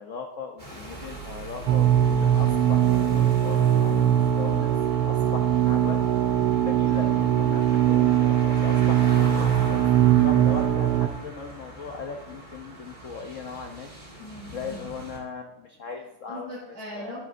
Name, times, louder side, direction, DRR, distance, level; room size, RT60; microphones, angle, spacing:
voice 1, 0.0-6.0 6.6-13.9 14.5-16.5 16.9-17.1, left 5 dB, 80° left, 3 dB, 0.6 m, -38 dB
sound 1, 0.6-15.2, right 1 dB, 20° right, 2.1 m, -41 dB
sound 2, 1.7-11.1, right 10 dB, 80° right, 1.5 m, -21 dB
voice 2, 2.1-2.6 14.2-14.9 16.3-17.2, left 1 dB, 60° right, -10 dB, 5.6 m, -40 dB
20.5 x 7.5 x 2.6 m, 0.94 s
omnidirectional pair, 2.4 m